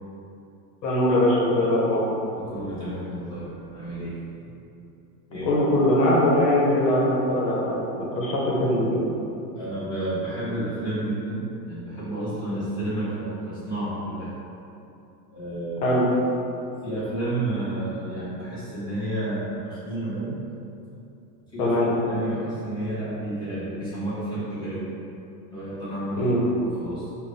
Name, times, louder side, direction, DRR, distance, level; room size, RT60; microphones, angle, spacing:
voice 1, 0.8-2.1 5.5-9.0 15.8-16.0 21.6-21.9 26.2-26.4, left 1 dB, 80° left, -5 dB, 1.2 m, -21 dB
voice 2, 2.4-4.2 5.3-5.6 9.5-14.3 15.3-15.9 16.6-20.4 21.5-21.7 22.1-25.0 25.5-26.3 26.6-27.1, right 1 dB, 10° left, -13 dB, 1.4 m, -31 dB
4.3 x 2.6 x 3.3 m, 2.8 s
supercardioid pair, 140°, 50 cm